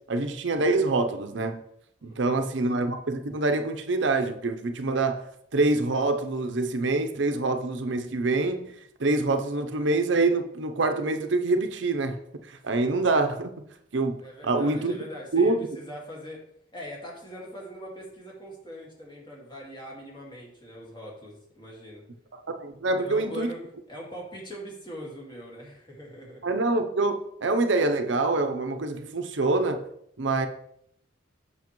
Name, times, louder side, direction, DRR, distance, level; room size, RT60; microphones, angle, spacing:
voice 1, 0.1-1.6 2.0-5.3 5.5-8.7 9.0-12.2 12.5-13.5 13.9-15.0 15.3-15.7 22.3-23.5 26.4-29.8 30.2-30.5, right 3 dB, 65° right, 0.7 m, -25 dB
voice 2, 2.0-2.4 14.2-16.4 16.7-22.0 23.0-23.6 23.9-26.4, equal, 25° left, 1.9 m, -42 dB
7.3 x 6.2 x 3.1 m
head